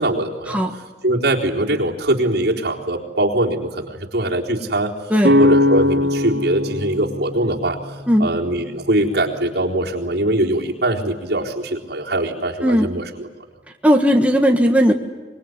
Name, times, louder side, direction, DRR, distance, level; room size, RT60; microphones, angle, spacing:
voice 1, 0.0-4.9 5.4-7.8 8.2-13.3, right 1 dB, 65° right, -1 dB, 3.9 m, -22 dB
sound 1, 5.2-9.0, left 1 dB, 85° right, 2.3 m, -20 dB
voice 2, 13.8-14.9, equal, 10° right, 3 dB, 1.7 m, -16 dB
25.0 x 22.0 x 9.7 m, 1.3 s
head